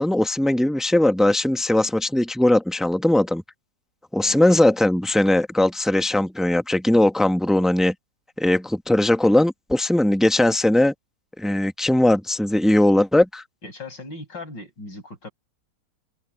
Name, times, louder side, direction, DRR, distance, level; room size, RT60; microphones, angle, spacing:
voice 1, 0.0-3.4 4.1-7.9 8.4-10.9 11.4-13.4, left 1 dB, ahead, 0.3 m, -19 dB
voice 2, 13.6-15.3, left 2 dB, 75° left, 8.9 m, -38 dB
open air
omnidirectional pair, 2.0 m